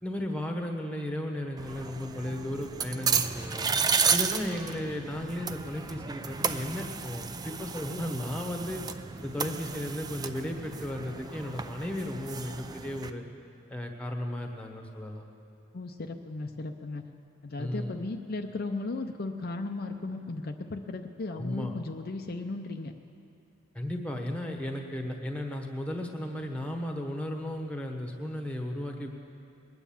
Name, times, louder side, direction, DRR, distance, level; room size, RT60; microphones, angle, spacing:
voice 1, 0.0-3.7 4.1-8.8 9.2-13.3 13.7-15.2 17.6-18.0 21.4-21.7 23.7-29.1, left 1 dB, 5° left, 3 dB, 1.1 m, -35 dB
sound 1, 1.6-13.1, right 5 dB, 20° right, 0.4 m, -33 dB
voice 2, 15.7-17.0 17.4-22.9, left 3 dB, 50° left, 4 dB, 0.5 m, -36 dB
20.5 x 9.3 x 7.2 m, 2.6 s
head